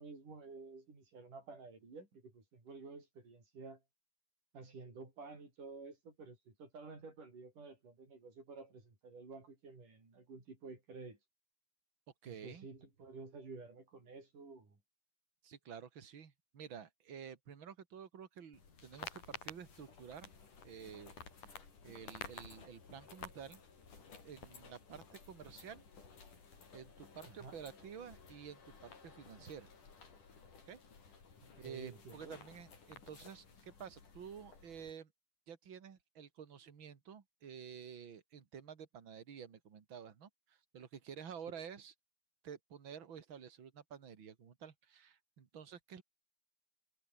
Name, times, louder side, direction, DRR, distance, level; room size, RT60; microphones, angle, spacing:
voice 1, 0.0-3.8 4.5-11.2 12.3-14.8 27.3-27.6 31.4-32.4, right 4 dB, 85° right, 8.9 m, -52 dB
voice 2, 12.2-12.7 15.4-20.3 20.6-21.1 21.4-21.5 21.8-23.6 24.2-25.8 26.7-29.7 30.7-30.8 31.6-35.1 35.5-41.9 42.4-46.0, right 7 dB, 40° right, 2.7 m, -51 dB
sound 1, 18.5-34.9, left 5 dB, 80° left, 6.5 m, -54 dB
omnidirectional pair, 3.6 m